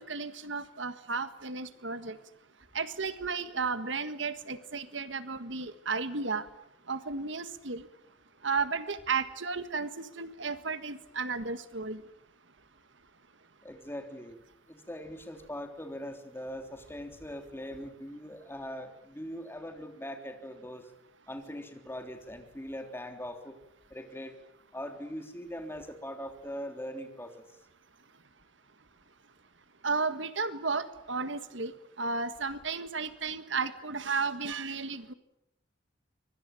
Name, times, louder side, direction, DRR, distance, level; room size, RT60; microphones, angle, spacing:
voice 1, 0.0-2.2 2.7-6.4 6.9-7.9 8.4-12.0 29.8-35.1, right 4 dB, 70° right, 11 dB, 1.7 m, -33 dB
voice 2, 13.6-14.4 14.7-20.9 21.3-23.6 23.9-24.3 24.7-27.4, equal, 10° left, 5 dB, 3.4 m, -41 dB
25.0 x 23.5 x 9.2 m, 0.79 s
head